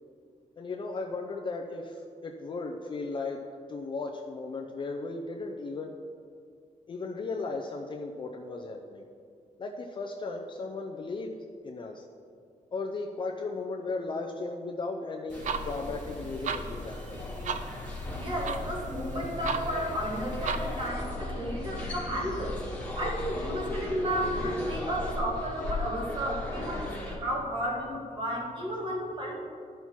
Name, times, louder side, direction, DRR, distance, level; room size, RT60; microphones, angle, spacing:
voice 1, 0.6-3.4 3.7-5.9 6.9-9.1 9.6-11.3 11.6-12.0 12.7-17.3, left 3 dB, 35° left, 2 dB, 0.5 m, -36 dB
sound 1, 15.3-27.2, left 2 dB, 10° left, 1.6 m, -36 dB
sound 2, 15.3-20.9, right 6 dB, 65° right, 0.5 m, -38 dB
voice 2, 18.2-22.6 23.0-29.3, equal, 35° right, -3 dB, 2.0 m, -33 dB
12.0 x 5.7 x 4.6 m, 2.2 s
wide cardioid pair, 170°, 14 cm